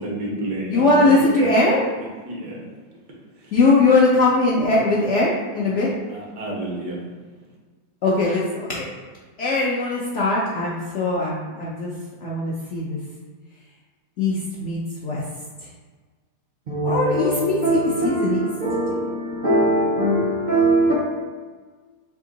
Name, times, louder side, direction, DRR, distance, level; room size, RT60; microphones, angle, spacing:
voice 1, 0.0-1.5 2.0-2.6 3.4-3.5 5.8-7.1, right 2 dB, 75° right, 1.5 m, -30 dB
voice 2, 0.7-1.8 3.5-5.9 8.0-8.9 9.4-11.9 12.2-13.0 14.2-15.2 16.8-18.4 18.9-19.1, left 2 dB, 65° left, 0.7 m, -20 dB
voice 3, 16.7-20.9, right 1 dB, 55° right, 0.5 m, -21 dB
3.5 x 2.8 x 3.8 m
omnidirectional pair, 1.8 m